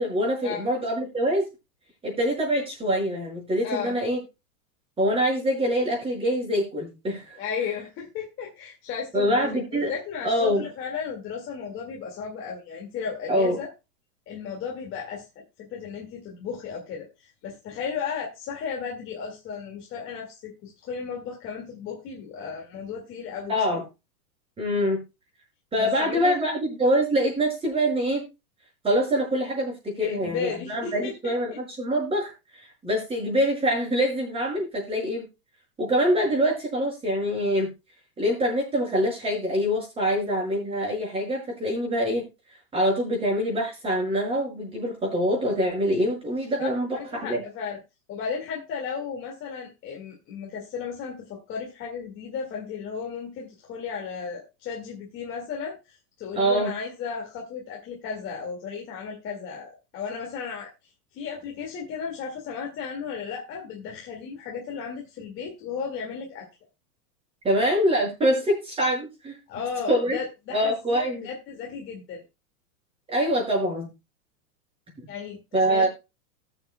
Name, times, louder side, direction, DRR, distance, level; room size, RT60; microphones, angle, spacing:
voice 1, 0.0-1.4 2.0-4.2 5.0-7.4 9.1-9.9 10.2-10.7 13.3-13.6 23.5-23.8 24.6-25.0 25.7-28.2 28.8-32.3 32.8-35.3 35.8-37.7 38.2-42.3 42.7-47.4 56.3-56.7 67.4-69.4 69.9-70.2 70.5-71.3 73.1-73.9 75.5-75.9, equal, 10° right, -1 dB, 5.3 m, -24 dB
voice 2, 3.6-3.9 7.4-13.7 14.3-15.3 15.6-23.8 25.8-26.4 30.0-31.6 40.1-40.2 46.6-46.7 47.1-47.8 48.1-60.7 61.1-66.5 69.5-72.2 75.1-75.9, left 6 dB, 25° left, -2 dB, 2.1 m, -34 dB
19.5 x 6.9 x 2.2 m, 0.26 s
supercardioid pair, 155°, 47 cm